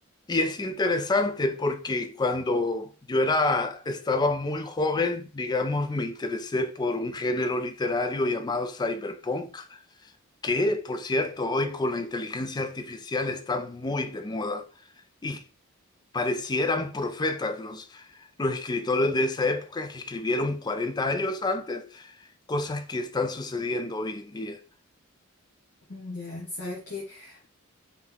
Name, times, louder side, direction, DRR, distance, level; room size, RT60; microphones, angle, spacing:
voice 1, 0.3-9.7 10.4-14.7 15.2-15.4 16.1-18.0 18.4-22.1 22.5-24.6, left 2 dB, 20° left, 0.4 m, -28 dB
voice 2, 25.9-27.4, left 2 dB, 60° left, 1.0 m, -37 dB
3.7 x 2.9 x 3.6 m
head